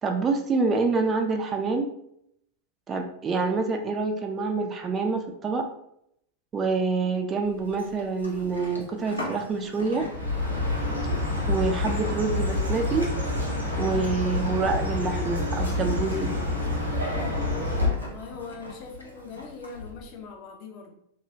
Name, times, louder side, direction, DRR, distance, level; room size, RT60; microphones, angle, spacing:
voice 1, 0.0-1.9 2.9-5.6 6.5-10.0 11.5-13.1 13.8-16.3, right 4 dB, 25° right, 4 dB, 0.3 m, -26 dB
Livestock farm animals working animals, 7.4-19.9, left 3 dB, 85° left, 0.6 m, -40 dB
Chirp tweet, 10.1-17.9, left 2 dB, 85° right, 1.1 m, -27 dB
voice 2, 17.9-20.9, left 4 dB, 40° left, 1 dB, 0.6 m, -41 dB
2.9 x 2.3 x 2.6 m, 0.75 s
figure-of-eight pair, 90°, 0 cm